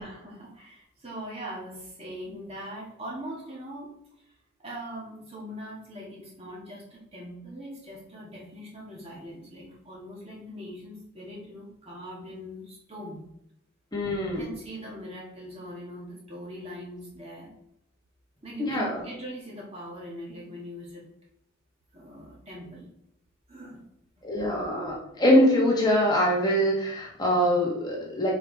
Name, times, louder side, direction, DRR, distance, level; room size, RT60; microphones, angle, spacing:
voice 1, 0.0-3.9 4.6-13.2 14.4-17.5 18.4-21.1 21.9-22.9 23.5-23.8, equal, 25° right, -4 dB, 1.8 m, -41 dB
voice 2, 13.9-14.4 18.6-19.0 24.2-28.3, equal, 20° left, -4 dB, 1.5 m, -23 dB
4.9 x 4.7 x 4.7 m, 0.78 s
head